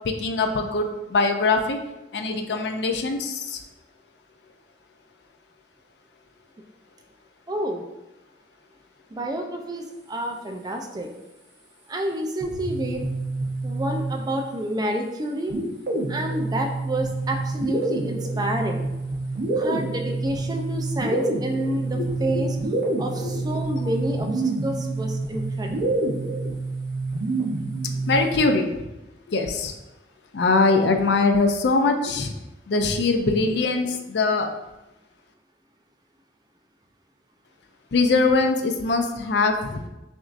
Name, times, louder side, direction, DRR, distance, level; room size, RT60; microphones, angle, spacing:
voice 1, 0.1-1.8 2.1-3.4 21.9-22.4 23.2-23.4 28.1-28.7 29.3-29.7 30.3-32.3 32.7-34.5 37.9-39.8, left 3 dB, 65° left, 5 dB, 0.4 m, -22 dB
voice 2, 7.5-7.8 9.1-11.1 11.9-13.0 13.6-15.6 16.1-18.8 19.5-22.6 23.0-25.8, right 1 dB, 20° right, 2 dB, 0.4 m, -29 dB
sound 1, 12.4-14.5 15.5-28.4, right 2 dB, 65° right, 0.8 m, -27 dB
6.0 x 2.6 x 2.5 m, 0.97 s
head